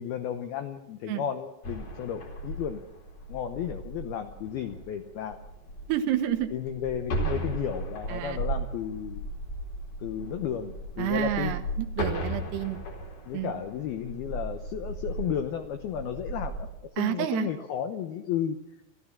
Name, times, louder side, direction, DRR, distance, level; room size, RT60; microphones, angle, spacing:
voice 1, 0.0-2.8 3.3-5.4 6.5-9.3 10.0-11.6 13.3-16.7 17.0-18.6, left 9 dB, 85° left, 7 dB, 2.2 m, -33 dB
sound 1, 1.6-16.8, right 1 dB, 45° left, 5.2 m, -36 dB
voice 2, 5.9-6.5 8.1-8.4 11.0-12.8 13.3-13.6 17.0-17.5, right 12 dB, 75° right, 9 dB, 2.7 m, -29 dB
28.5 x 14.0 x 7.4 m, 0.91 s
omnidirectional pair, 5.9 m